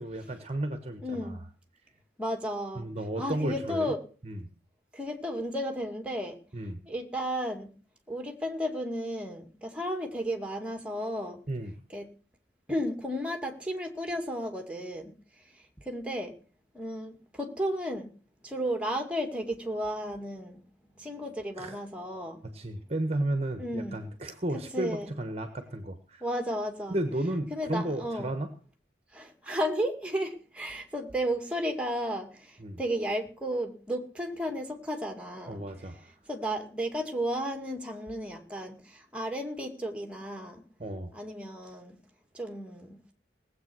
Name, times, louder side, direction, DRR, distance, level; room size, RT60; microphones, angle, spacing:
voice 1, 0.0-1.4 2.8-3.9 4.2-4.5 6.5-6.8 11.5-11.7 21.6-21.8 22.4-26.2 26.9-28.5 32.6-32.8 35.5-36.1 40.8-41.1, right 1 dB, 35° right, 8 dB, 1.2 m, -33 dB
voice 2, 1.0-1.4 2.2-2.9 3.2-4.0 4.9-6.4 6.9-7.7 8.1-11.4 11.9-12.1 12.7-15.1 15.8-16.3 16.7-18.1 18.4-20.6 21.0-22.4 23.6-24.0 24.7-25.1 26.2-27.0 27.5-28.3 29.1-32.5 32.8-35.6 36.3-40.6 41.1-42.0 42.3-43.0, equal, 5° right, 4 dB, 2.2 m, -33 dB
18.5 x 8.2 x 6.2 m, 0.39 s
head